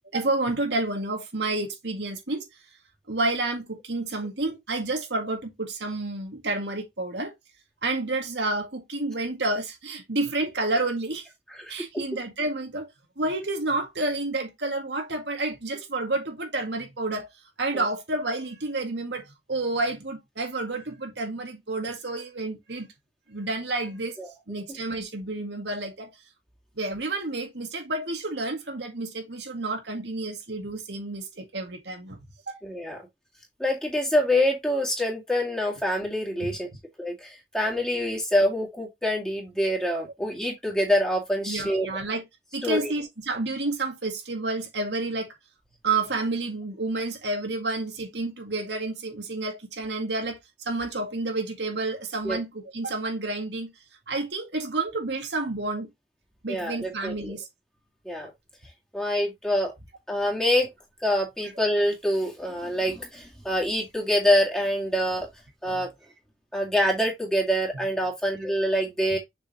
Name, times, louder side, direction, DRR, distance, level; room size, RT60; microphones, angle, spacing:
voice 1, 0.1-2.5 3.1-7.3 7.8-11.3 11.7-12.9 13.2-17.3 17.6-22.9 23.3-24.2 24.5-26.1 26.8-32.2 32.5-32.6 36.4-36.6 41.5-42.2 42.5-45.3 45.8-53.7 54.1-55.9 56.4-57.5 65.7-65.9 67.7-67.9, right 2 dB, 75° right, 2.0 m, -30 dB
voice 2, 11.6-12.0 17.7-17.8 24.2-24.3 32.6-33.0 33.6-36.7 37.0-41.9 42.6-42.9 52.2-52.4 56.5-57.4 58.0-58.3 58.9-59.7 60.1-60.7 61.0-65.3 65.6-65.9 66.5-69.2, equal, 5° left, 2.2 m, -25 dB
6.7 x 5.0 x 2.9 m
head